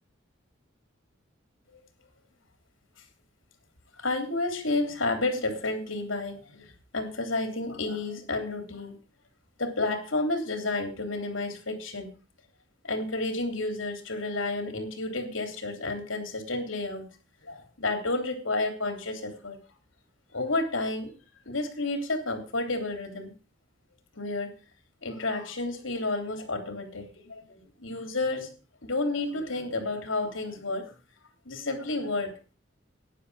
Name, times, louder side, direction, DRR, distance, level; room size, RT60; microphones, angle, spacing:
voice 1, 4.0-9.0 9.6-12.1 12.8-17.0 17.4-19.6 20.3-21.1 21.4-23.3 24.2-24.5 25.0-28.5 28.8-30.9 31.4-32.5, left 2 dB, 80° left, 7 dB, 3.3 m, -31 dB
12.5 x 10.0 x 4.9 m, 0.35 s
head